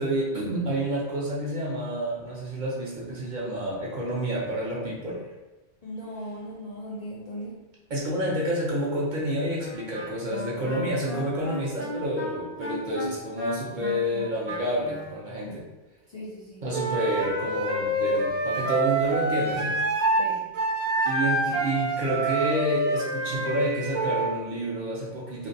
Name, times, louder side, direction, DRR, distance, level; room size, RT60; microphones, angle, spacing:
voice 1, 0.0-5.2 7.9-15.7 16.6-19.8 21.0-25.5, right 1 dB, 55° right, -5 dB, 0.6 m, -29 dB
voice 2, 5.8-7.6 15.4-15.6 16.1-16.6 20.1-20.4, equal, 55° left, -6 dB, 0.4 m, -38 dB
Wind instrument woodwind instrument, 9.6-15.2, left 1 dB, 20° right, 0.4 m, -35 dB
Wind instrument woodwind instrument 2, 16.7-20.3 20.5-24.4, right 2 dB, 85° right, 0.9 m, -26 dB
2.5 x 2.0 x 2.6 m, 1.1 s
omnidirectional pair, 1.1 m